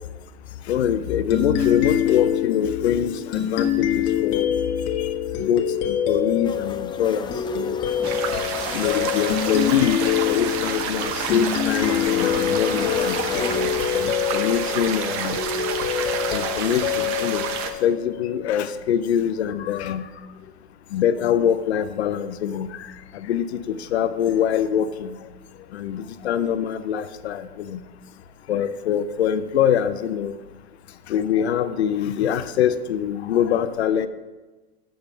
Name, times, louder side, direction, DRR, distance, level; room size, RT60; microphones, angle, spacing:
voice 1, 0.7-4.5 5.0-5.1 5.4-7.8 8.7-10.0 10.3-15.4 16.3-17.4 17.8-20.1 20.9-22.7 23.1-25.2 25.7-27.8 28.5-30.3 31.1-34.1, left 9 dB, 80° left, 13 dB, 0.7 m, -24 dB
sound 1, 1.3-18.5, left 10 dB, 50° left, 1.3 m, -25 dB
sound 2, 6.4-13.8, left 5 dB, 15° left, 0.4 m, -35 dB
sound 3, 8.0-17.7, right 7 dB, 45° right, 1.0 m, -29 dB
6.8 x 6.5 x 7.0 m, 1.2 s
hypercardioid pair, 105°, 32 cm